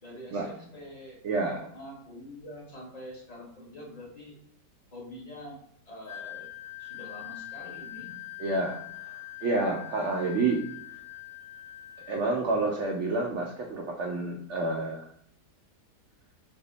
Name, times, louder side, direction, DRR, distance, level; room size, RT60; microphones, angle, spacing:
voice 1, 0.0-1.2 1.5-4.4 4.9-6.5 6.8-8.2, left 1 dB, 35° left, -2 dB, 0.7 m, -45 dB
voice 2, 1.2-1.6 8.4-10.6 12.1-15.1, right 3 dB, 85° right, 0 dB, 0.6 m, -29 dB
Wind instrument woodwind instrument, 6.0-12.2, left 15 dB, 65° left, 1.5 m, -43 dB
3.4 x 2.0 x 3.8 m, 0.68 s
omnidirectional pair, 1.8 m